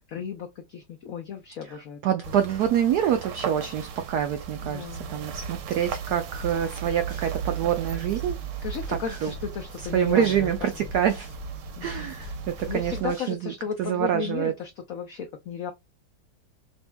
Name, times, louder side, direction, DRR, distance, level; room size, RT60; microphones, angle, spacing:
voice 1, 0.1-2.0 4.6-5.2 8.6-10.9 11.8-12.1 12.7-15.7, left 7 dB, 85° left, 0.7 m, -35 dB
voice 2, 2.0-8.4 8.9-9.3 9.9-11.3 11.8-12.3 12.6-13.5 13.8-14.5, right 9 dB, 85° right, 0.8 m, -26 dB
sound 1, 2.2-13.0, right 8 dB, 70° right, 1.2 m, -37 dB
sound 2, 5.3-13.3, right 2 dB, 45° right, 0.3 m, -39 dB
5.2 x 2.7 x 2.2 m
omnidirectional pair, 2.2 m